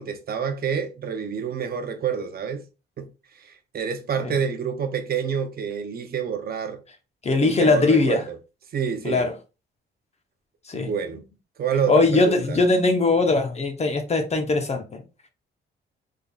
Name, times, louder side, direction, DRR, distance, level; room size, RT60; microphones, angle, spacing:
voice 1, 0.0-2.6 3.0-3.1 3.3-6.8 7.4-8.4 8.7-9.3 10.7-11.2 11.6-12.6, right 7 dB, 50° right, 0.6 m, -28 dB
voice 2, 7.2-8.2 9.0-9.3 10.7-10.9 11.9-15.0, left 3 dB, 35° left, 0.8 m, -20 dB
3.6 x 3.5 x 2.3 m
cardioid pair, 90°, 20 cm